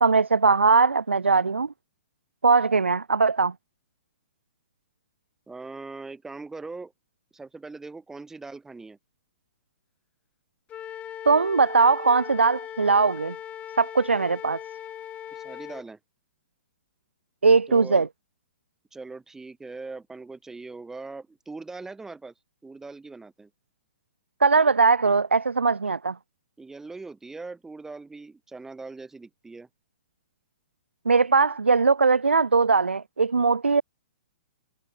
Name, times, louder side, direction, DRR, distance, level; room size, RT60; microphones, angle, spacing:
voice 1, 0.0-1.7 2.4-3.5 11.3-13.4 13.8-14.6 17.4-18.1 24.4-26.2 31.1-33.8, right 4 dB, 80° right, 0.6 m, -20 dB
voice 2, 5.5-6.9 7.3-9.0 15.3-16.0 17.7-18.1 18.9-22.3 22.6-23.5 26.6-29.7, right 3 dB, 5° right, 2.6 m, -41 dB
Wind instrument woodwind instrument, 10.7-15.8, left 10 dB, 20° left, 4.5 m, -39 dB
figure-of-eight pair, 120°, 6 cm